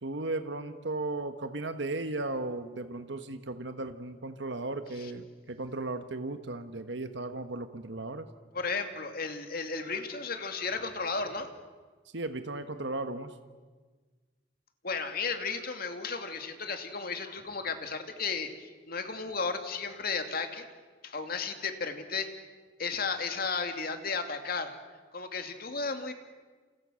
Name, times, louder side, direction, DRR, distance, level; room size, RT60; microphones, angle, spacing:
voice 1, 0.0-8.3 12.1-13.3, right 2 dB, 70° right, 9 dB, 1.4 m, -36 dB
voice 2, 8.5-11.5 14.8-20.6 21.0-22.3 22.8-24.7 25.1-26.1, left 4 dB, 50° left, 6 dB, 2.5 m, -34 dB
30.0 x 29.0 x 6.4 m, 1.4 s
head